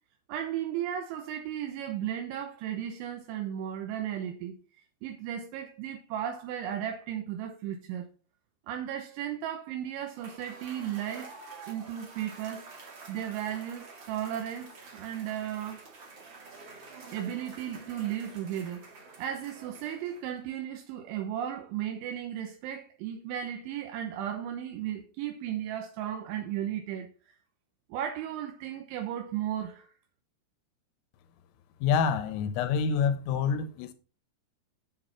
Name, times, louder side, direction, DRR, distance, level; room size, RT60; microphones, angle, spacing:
voice 1, 0.3-4.6 5.0-8.1 8.7-11.3 11.7-12.7 13.1-15.9 17.1-18.9 19.2-27.3 27.9-29.9, right 10 dB, 80° right, 3.1 m, -35 dB
Cheering / Applause / Crowd, 10.0-20.5, right 4 dB, 55° right, 1.3 m, -49 dB
voice 2, 31.8-33.9, left 6 dB, 85° left, 3.6 m, -27 dB
9.0 x 8.0 x 4.2 m
omnidirectional pair, 5.9 m